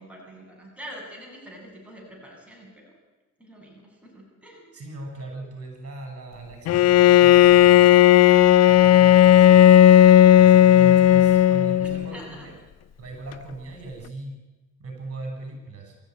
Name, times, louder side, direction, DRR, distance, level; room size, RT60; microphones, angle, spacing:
voice 1, 0.0-2.9 3.4-4.7 11.8-12.5, equal, 5° right, -2 dB, 7.6 m, -44 dB
voice 2, 4.7-7.9 8.6-9.8 10.3-12.5 13.0-14.3 14.8-16.0, right 3 dB, 50° right, 3 dB, 7.6 m, -38 dB
Bowed string instrument, 6.7-12.1, left 11 dB, 55° left, 0.6 m, -14 dB
23.5 x 13.5 x 9.6 m, 1.2 s
cardioid pair, 100°, 30 cm